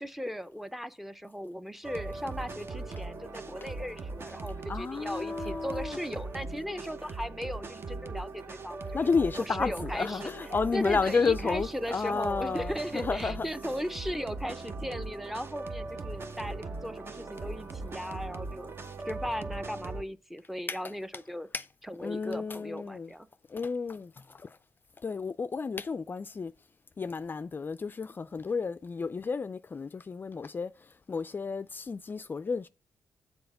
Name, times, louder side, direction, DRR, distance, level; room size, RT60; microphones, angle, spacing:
voice 1, 0.0-9.0 9.5-10.3 10.7-18.7 19.0-21.5 21.9-23.3, equal, 5° right, 0.6 m, -37 dB
sound 1, 1.8-20.0, right 3 dB, 45° right, 0.9 m, -39 dB
voice 2, 4.7-6.0 8.9-13.5 20.7-20.9 21.5-21.7 22.0-23.1 23.5-24.6 25.0-26.5 27.0-32.7, left 5 dB, 35° left, 0.4 m, -32 dB
6.9 x 4.2 x 6.5 m
supercardioid pair, 60°, 6 cm